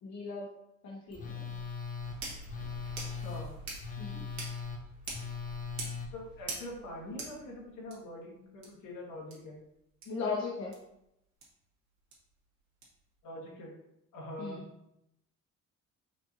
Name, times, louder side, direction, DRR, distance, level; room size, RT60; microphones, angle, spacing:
voice 1, 0.0-0.5 0.8-1.6 4.0-4.3 10.1-10.7 14.4-14.6, left 4 dB, 60° left, -3 dB, 0.8 m, -37 dB
Telephone, 1.1-6.1, left 5 dB, 25° left, 0.6 m, -40 dB
sound 1, 2.0-7.9 8.6-8.7 9.3-9.4 10.0-10.1 10.7-10.8 11.4-11.5 12.1-12.2 12.8-12.9, right 2 dB, 65° right, 1.4 m, -44 dB
voice 2, 3.0-3.5 6.1-9.6 13.2-13.7 14.1-14.6, left 1 dB, 80° left, -2 dB, 1.4 m, -44 dB
5.2 x 2.6 x 2.8 m, 0.83 s
cardioid pair, 90°, 30 cm